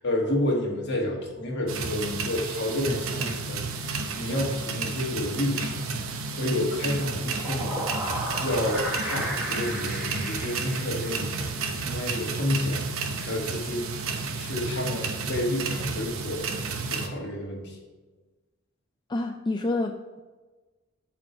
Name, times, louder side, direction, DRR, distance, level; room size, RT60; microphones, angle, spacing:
voice 1, 0.0-3.6 4.1-7.9 8.4-12.8 13.2-13.9 14.4-16.5 16.8-17.8, left 1 dB, 55° left, 0 dB, 1.6 m, -30 dB
sound 1, 1.7-17.1, right 4 dB, 75° right, 0.8 m, -32 dB
sound 2, 7.2-11.6, equal, 5° right, 1.4 m, -34 dB
voice 2, 19.1-20.2, left 2 dB, 20° left, 4 dB, 0.3 m, -28 dB
7.4 x 4.7 x 5.9 m, 1.2 s
head